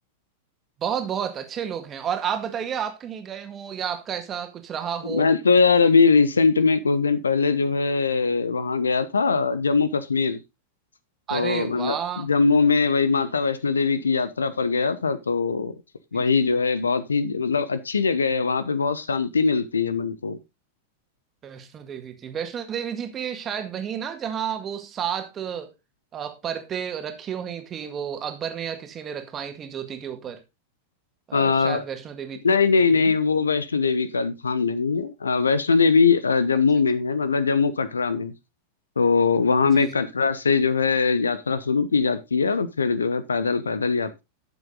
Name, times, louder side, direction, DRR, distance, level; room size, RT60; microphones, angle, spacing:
voice 1, 0.8-5.3 11.3-12.3 16.1-16.3 21.4-25.7 26.1-30.4 31.3-32.4 32.8-33.1 39.7-39.9, right 8 dB, 25° right, 2.0 m, -31 dB
voice 2, 5.0-10.4 11.3-15.7 16.1-20.4 31.3-31.8 32.4-38.3 39.0-44.2, left 4 dB, 75° left, 0.9 m, -21 dB
11.5 x 7.2 x 3.8 m
figure-of-eight pair, 90°, 0 cm